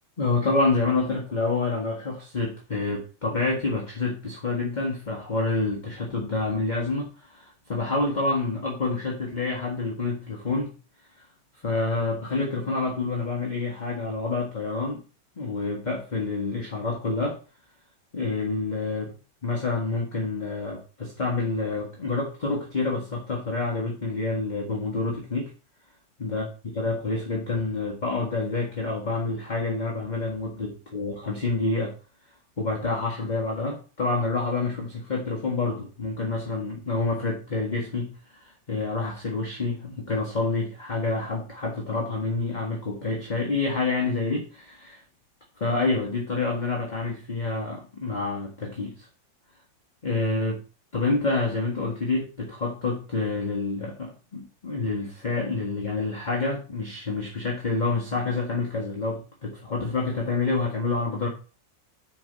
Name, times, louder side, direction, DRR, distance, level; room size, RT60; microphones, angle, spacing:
voice 1, 0.2-10.7 11.2-11.3 11.6-15.0 15.4-17.4 18.1-19.1 19.4-25.5 26.2-31.9 32.6-45.0 45.6-49.1 50.0-50.6 50.9-61.3, left 3 dB, 25° left, 0 dB, 1.5 m, -28 dB
6.9 x 5.9 x 5.5 m, 0.35 s
omnidirectional pair, 2.0 m